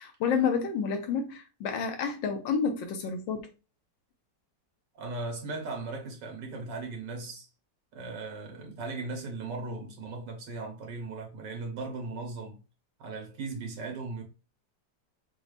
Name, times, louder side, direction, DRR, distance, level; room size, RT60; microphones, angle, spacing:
voice 1, 0.0-3.5, left 6 dB, 90° left, 1.5 m, -29 dB
voice 2, 4.9-7.5 7.9-12.6 13.0-14.2, right 3 dB, 75° right, 1.8 m, -37 dB
5.3 x 2.4 x 3.2 m
omnidirectional pair, 2.0 m